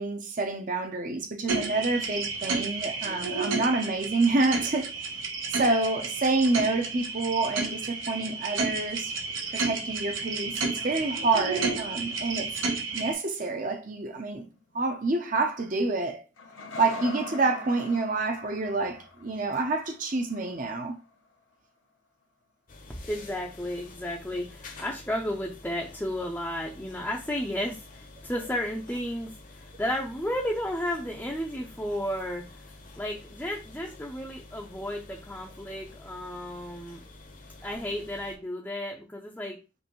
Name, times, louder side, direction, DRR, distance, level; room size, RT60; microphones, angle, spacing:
voice 1, 0.0-4.9 5.5-9.1 9.5-14.4 14.7-16.2 16.8-20.9, right 3 dB, 40° right, 0.6 m, -28 dB
sound 1, 1.5-13.1, right 4 dB, 80° right, 0.8 m, -32 dB
sound 2, 6.0-7.2 9.9-15.8 16.4-21.4 23.8-23.9, left 3 dB, 85° left, 0.8 m, -46 dB
sound 3, 22.7-38.4, left 2 dB, 40° left, 0.8 m, -49 dB
voice 2, 23.1-32.7 33.0-37.0 37.6-39.6, equal, 10° left, 0.5 m, -33 dB
5.3 x 2.6 x 3.0 m
head